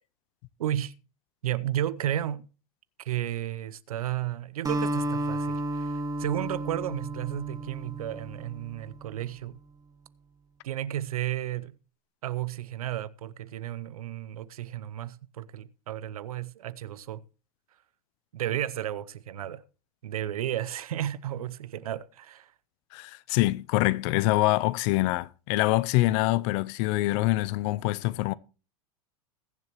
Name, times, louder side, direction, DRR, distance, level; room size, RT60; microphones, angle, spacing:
voice 1, 0.6-0.9 1.4-2.5 3.0-9.6 10.6-11.8 12.2-17.2 18.3-19.6 20.0-22.5, right 12 dB, 85° right, 0.7 m, -33 dB
Acoustic guitar, 4.6-9.1, right 1 dB, 20° right, 1.5 m, -32 dB
voice 2, 22.9-28.3, left 18 dB, 55° left, 0.6 m, -25 dB
21.5 x 7.5 x 3.0 m
hypercardioid pair, 110°, 18 cm